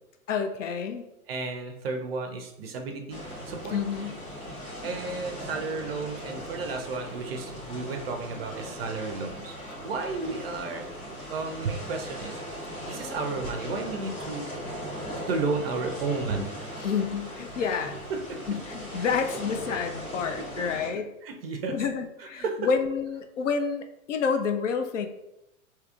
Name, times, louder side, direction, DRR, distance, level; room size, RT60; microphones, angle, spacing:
voice 1, 0.3-1.0 3.7-4.2 16.8-18.0 18.5-21.1 21.7-25.1, left 6 dB, 60° left, 6 dB, 0.5 m, -29 dB
voice 2, 1.3-3.8 4.8-9.5 9.8-12.4 12.9-14.5 15.3-16.5 18.1-18.4 20.4-20.5 21.2-21.8 22.2-22.6, right 4 dB, 45° right, 4 dB, 0.5 m, -33 dB
sound 1, 3.1-20.9, equal, 80° left, 1.4 m, -39 dB
3.4 x 2.8 x 2.3 m, 0.85 s
figure-of-eight pair, 110°, 43 cm